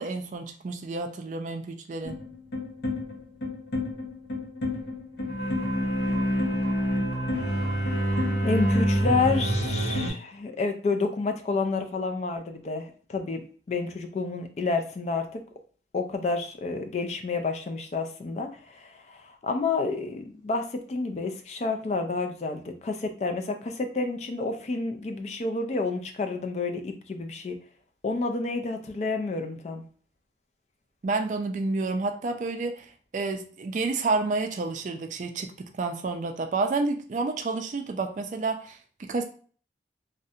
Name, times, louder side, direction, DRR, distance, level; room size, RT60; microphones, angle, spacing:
voice 1, 0.0-2.2 31.0-39.2, right 3 dB, 45° right, 5 dB, 0.3 m, -30 dB
sound 1, 2.0-10.1, equal, 75° left, 0.7 m, -27 dB
voice 2, 8.4-15.4 15.9-27.6 28.0-29.8, left 3 dB, 40° left, 5 dB, 0.3 m, -29 dB
2.4 x 2.1 x 2.7 m, 0.43 s
head